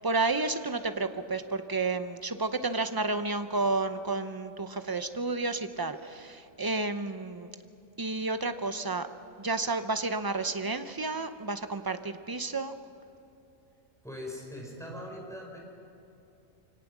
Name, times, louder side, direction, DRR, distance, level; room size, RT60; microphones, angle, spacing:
voice 1, 0.0-7.5 8.0-9.1 9.4-12.7, right 3 dB, 25° right, 9 dB, 0.5 m, -31 dB
voice 2, 14.0-15.6, left 1 dB, ahead, -2 dB, 4.7 m, -41 dB
24.0 x 18.0 x 6.1 m, 2.8 s
omnidirectional pair, 1.4 m